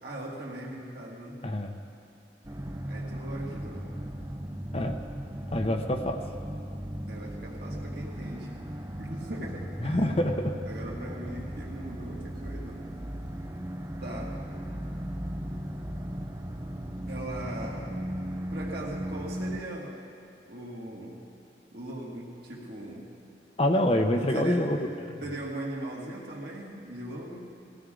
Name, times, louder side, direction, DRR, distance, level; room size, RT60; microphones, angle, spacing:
voice 1, 0.0-1.4 2.9-3.9 7.1-8.5 9.0-10.0 10.7-12.8 14.0-14.3 17.1-17.9 18.5-20.0 20.4-21.2 21.7-23.1 24.1-24.7 25.2-27.5, right 1 dB, 60° right, -3 dB, 2.2 m, -39 dB
voice 2, 1.4-1.7 4.7-5.0 5.5-6.2 9.8-10.5 23.6-24.8 25.0-25.2, left 1 dB, 35° left, 5 dB, 0.8 m, -26 dB
sound 1, 2.4-19.6, equal, 20° right, 0.6 m, -37 dB
19.5 x 16.0 x 3.8 m, 2.5 s
head